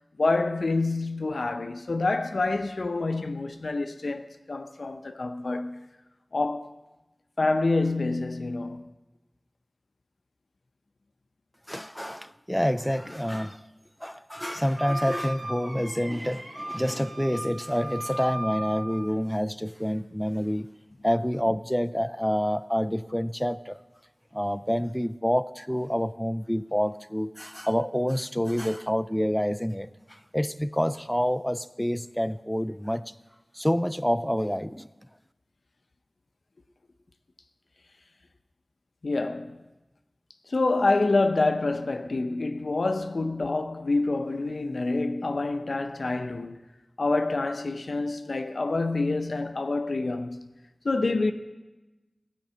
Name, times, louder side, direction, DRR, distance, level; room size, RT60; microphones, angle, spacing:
voice 1, 0.2-5.8 6.3-6.7 7.4-8.9 39.0-39.6 40.5-46.6 47.0-50.5 50.8-51.3, left 3 dB, 80° left, 0.6 m, -27 dB
voice 2, 11.7-13.6 14.0-20.7 21.0-23.8 24.3-33.0 33.5-34.9, equal, 5° left, 0.4 m, -28 dB
Wind instrument woodwind instrument, 14.8-19.1, right 1 dB, 80° right, 3.8 m, -37 dB
15.5 x 5.3 x 7.5 m
wide cardioid pair, 60°, 0 cm